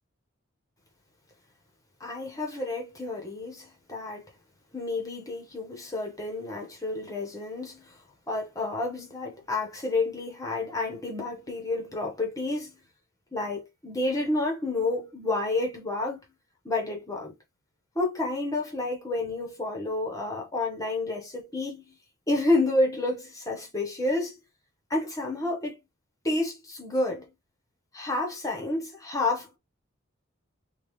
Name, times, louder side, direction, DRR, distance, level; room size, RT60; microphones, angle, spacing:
voice 1, 2.0-4.2 4.7-8.0 8.3-12.8 13.3-16.2 16.6-17.4 17.9-22.0 22.3-24.4 24.9-25.8 26.2-27.2 27.9-29.6, left 2 dB, 15° left, 1.1 m, -30 dB
3.6 x 2.4 x 3.1 m
head